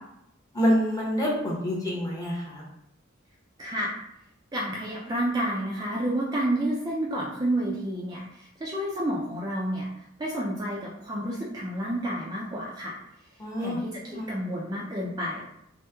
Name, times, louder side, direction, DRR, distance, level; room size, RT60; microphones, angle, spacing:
voice 1, 0.5-2.6 13.4-13.8 14.1-14.3, equal, 15° left, -4 dB, 0.7 m, -27 dB
voice 2, 3.6-4.0 4.5-13.0 13.6-15.4, right 1 dB, 20° right, -4 dB, 0.3 m, -30 dB
2.9 x 2.1 x 3.3 m, 0.77 s
head